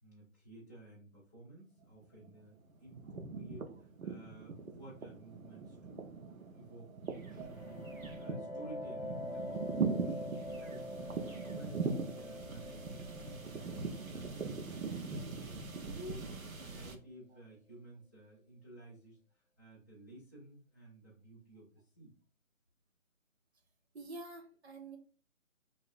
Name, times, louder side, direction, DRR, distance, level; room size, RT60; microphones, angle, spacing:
voice 1, 0.0-10.9 11.2-22.1, right 1 dB, 15° right, -9 dB, 0.7 m, -54 dB
sound 1, 1.8-2.4 2.7-17.0, right 4 dB, 85° right, 1.0 m, -41 dB
sound 2, 7.2-16.6, left 2 dB, 35° left, 0.8 m, -46 dB
voice 2, 23.9-25.0, right 3 dB, 50° right, 2 dB, 1.3 m, -47 dB
5.1 x 2.8 x 2.6 m, 0.38 s
figure-of-eight pair, 160°, 40 cm